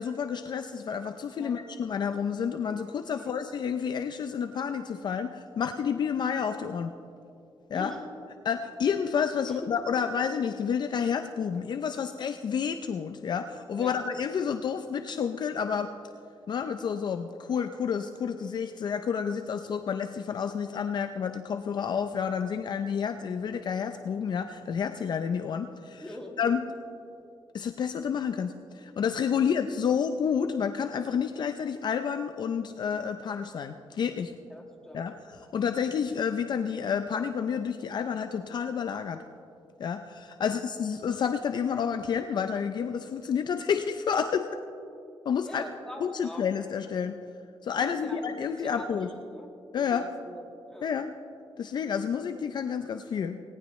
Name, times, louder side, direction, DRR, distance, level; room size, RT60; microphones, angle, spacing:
voice 1, 0.0-6.9 7.7-7.9 8.4-15.9 16.5-26.0 26.4-26.6 27.5-34.3 34.9-35.1 35.4-39.2 39.8-44.5 45.2-45.6 46.0-47.2 47.6-49.1 49.7-50.0 50.8-51.1 51.6-53.4, left 7 dB, 50° left, 8 dB, 0.5 m, -30 dB
voice 2, 7.7-8.1 9.5-9.6 13.7-14.1 26.0-26.4 29.3-29.5 34.5-35.1 40.4-40.6 45.4-46.5 47.8-50.9, left 1 dB, 5° left, 0 dB, 1.7 m, -43 dB
18.5 x 18.5 x 3.1 m, 2.7 s
wide cardioid pair, 170°, 10 cm